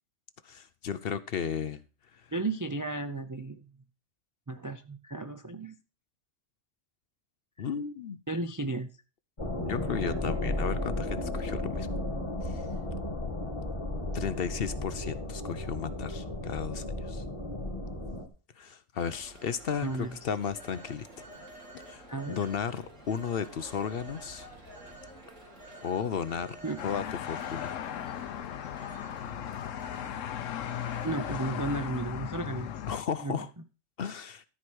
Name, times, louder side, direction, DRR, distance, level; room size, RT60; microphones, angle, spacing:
voice 1, 0.4-1.8 2.1-2.3 7.6-8.2 9.6-11.9 12.4-12.7 14.1-17.2 18.6-21.3 21.8-24.5 25.8-27.8 32.9-33.5 34.0-34.4, left 7 dB, 55° left, 0.8 m, -34 dB
voice 2, 2.3-3.6 4.5-5.8 7.6-7.7 8.3-8.9 19.8-20.2 22.1-22.4 26.6-26.8 31.0-32.7 33.2-33.5, right 2 dB, 30° right, 0.3 m, -34 dB
sound 1, 9.4-18.3, left 1 dB, 25° left, 1.8 m, -34 dB
Telephone, 19.0-31.4, right 1 dB, 75° right, 3.3 m, -49 dB
sound 2, 26.8-33.0, left 10 dB, 85° left, 1.1 m, -37 dB
13.0 x 4.8 x 6.2 m
omnidirectional pair, 1.3 m